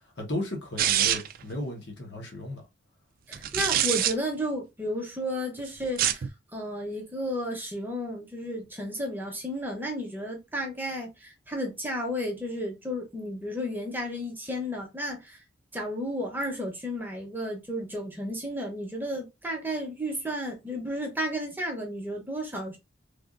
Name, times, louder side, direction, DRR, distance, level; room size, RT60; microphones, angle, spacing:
voice 1, 0.2-2.6, left 1 dB, 65° left, 1.1 m, -35 dB
sound 1, 0.8-1.4 3.3-4.1 5.8-6.3, right 11 dB, 50° right, 0.3 m, -25 dB
voice 2, 3.3-6.2 6.5-15.4 15.7-22.8, equal, 10° right, 0.8 m, -33 dB
3.4 x 2.5 x 2.4 m
head